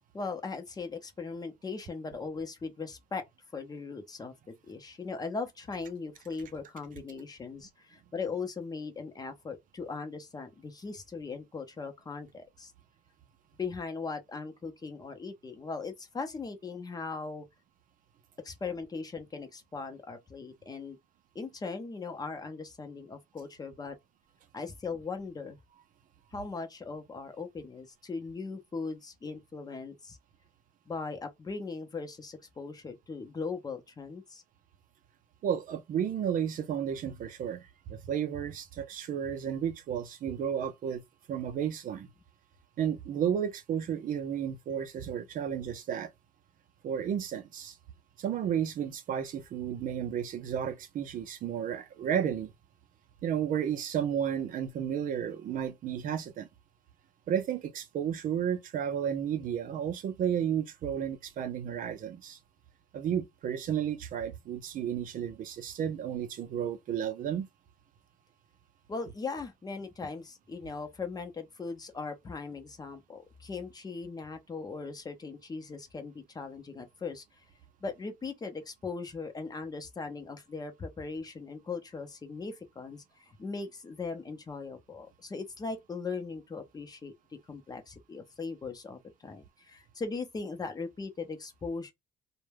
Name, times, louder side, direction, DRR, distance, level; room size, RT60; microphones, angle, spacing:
voice 1, 0.1-3.2 3.5-4.3 4.6-12.7 13.6-17.5 18.4-21.0 21.3-23.9 24.5-25.6 26.3-30.2 30.9-34.4 68.9-77.4 77.8-87.1 87.5-91.9, left 4 dB, 20° left, 0.6 m, -39 dB
voice 2, 35.4-41.0 41.3-42.1 42.8-46.1 46.8-47.8 48.2-52.5 53.2-56.5 57.3-62.4 62.9-67.5, right 9 dB, 50° right, 0.5 m, -32 dB
2.2 x 2.1 x 3.3 m
cardioid pair, 110°, 17 cm